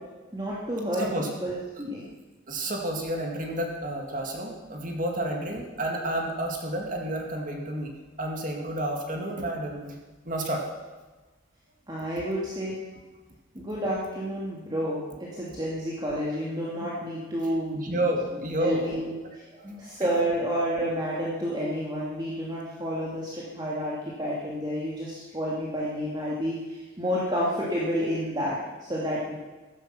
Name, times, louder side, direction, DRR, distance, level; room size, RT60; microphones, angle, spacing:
voice 1, 0.3-2.0 5.3-5.4 11.9-12.7 13.5-18.0 18.6-29.3, equal, 20° right, -6 dB, 2.4 m, -30 dB
voice 2, 1.0-1.3 2.5-7.9 8.2-10.0 10.3-10.6 17.7-18.9, right 1 dB, 40° right, 1 dB, 2.3 m, -30 dB
15.5 x 13.5 x 6.1 m, 1.2 s
head